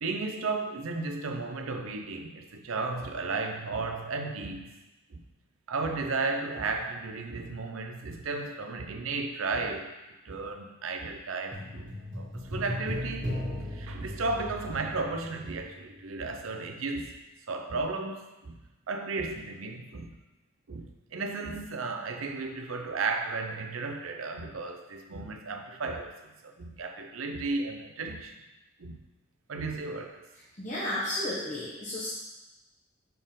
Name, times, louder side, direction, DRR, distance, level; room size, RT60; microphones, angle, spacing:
voice 1, 0.0-4.8 5.1-5.2 5.7-9.9 10.2-13.4 13.7-17.1 17.5-18.6 18.9-20.1 20.7-26.2 26.4-28.4 28.8-29.0 29.5-30.3, right 3 dB, 85° right, 5 dB, 0.7 m, -34 dB
sound 1, 11.5-16.3, left 1 dB, 55° right, 2.1 m, -37 dB
voice 2, 30.6-32.1, left 1 dB, 35° left, -9 dB, 1.2 m, -32 dB
6.7 x 4.2 x 3.8 m, 1.0 s
head